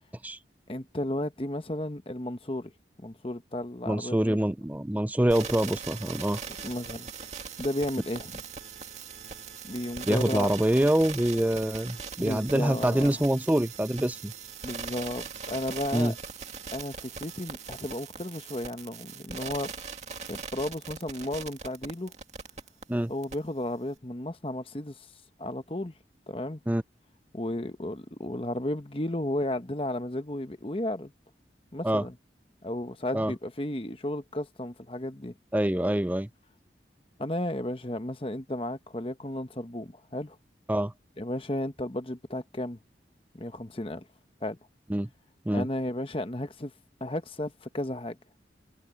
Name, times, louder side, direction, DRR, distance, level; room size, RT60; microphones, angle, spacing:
voice 1, 0.7-2.7 3.0-4.4 6.6-7.1 7.6-8.4 9.7-10.5 12.2-13.2 14.6-16.1 16.7-19.7 20.3-22.1 23.1-25.1 25.4-25.9 26.3-26.6 27.3-31.1 31.7-32.1 32.6-35.3 37.2-40.4 41.2-42.8 43.3-44.0 44.4-44.6 45.5-46.7 47.0-48.2, left 1 dB, 30° left, 1.1 m, -33 dB
voice 2, 3.9-6.4 10.1-14.3 15.9-16.1 22.9-23.1 26.7-26.8 31.8-32.0 33.1-33.3 35.5-36.3 40.7-40.9 44.9-45.1 45.5-45.7, right 1 dB, 10° right, 0.4 m, -25 dB
sound 1, 5.3-22.8 23.2-23.3, right 5 dB, 40° right, 2.3 m, -40 dB
head